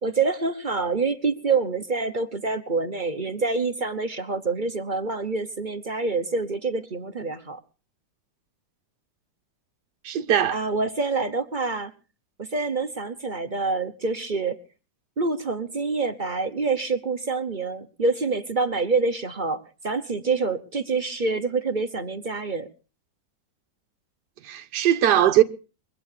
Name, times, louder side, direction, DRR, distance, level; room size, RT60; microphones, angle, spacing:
voice 1, 0.0-7.6 10.5-11.9 12.4-14.6 15.2-22.7, right 4 dB, 35° right, 0.9 m, -26 dB
voice 2, 10.0-10.6 24.4-25.4, right 11 dB, 65° right, 1.6 m, -20 dB
23.5 x 8.5 x 6.8 m
omnidirectional pair, 2.0 m